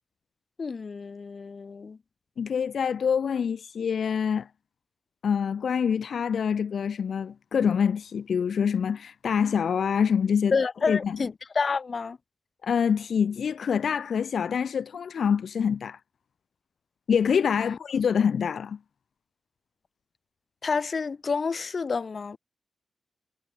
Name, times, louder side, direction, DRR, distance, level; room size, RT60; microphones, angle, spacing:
voice 1, 0.6-2.0 10.5-12.2 17.6-17.8 20.6-22.4, left 5 dB, 50° left, 2.6 m, -29 dB
voice 2, 2.4-4.5 5.2-10.6 10.9-11.2 12.6-16.0 17.1-18.8, left 7 dB, 85° left, 0.8 m, -25 dB
wide cardioid pair, 135°, 0 cm